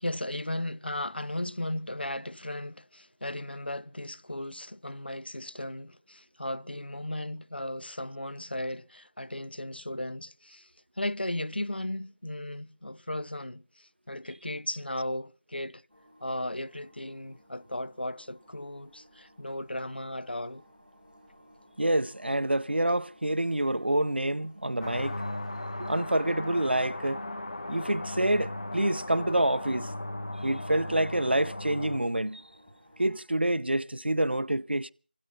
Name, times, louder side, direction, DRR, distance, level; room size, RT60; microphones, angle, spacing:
voice 1, 0.0-10.7 11.0-15.8 16.2-20.6, left 1 dB, 65° left, 0.8 m, -36 dB
sound 1, 15.9-33.2, equal, 5° left, 4.4 m, -59 dB
voice 2, 21.8-25.2 25.8-27.2 27.7-29.9 30.4-32.4 33.0-34.9, right 1 dB, 70° right, 0.8 m, -27 dB
sound 2, 24.8-32.0, left 1 dB, 40° left, 1.4 m, -37 dB
25.5 x 8.8 x 5.7 m
figure-of-eight pair, 175°, 6 cm